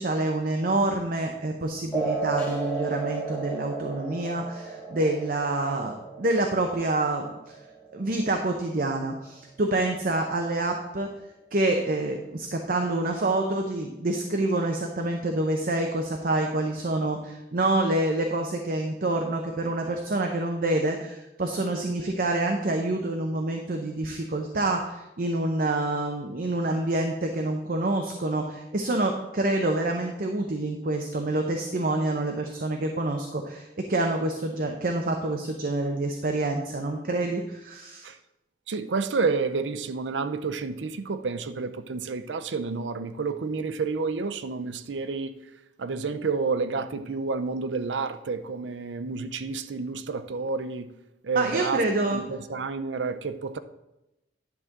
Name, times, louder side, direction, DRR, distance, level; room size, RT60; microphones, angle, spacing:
voice 1, 0.0-7.6 7.9-11.1 11.5-38.1 51.3-52.2, right 2 dB, 50° right, 0.7 m, -27 dB
sound 1, 1.9-8.9, right 4 dB, 5° left, 1.8 m, -34 dB
voice 2, 38.7-45.3 45.8-50.9 51.2-51.8 52.1-53.6, right 4 dB, 90° right, 0.6 m, -29 dB
11.0 x 3.7 x 6.5 m
head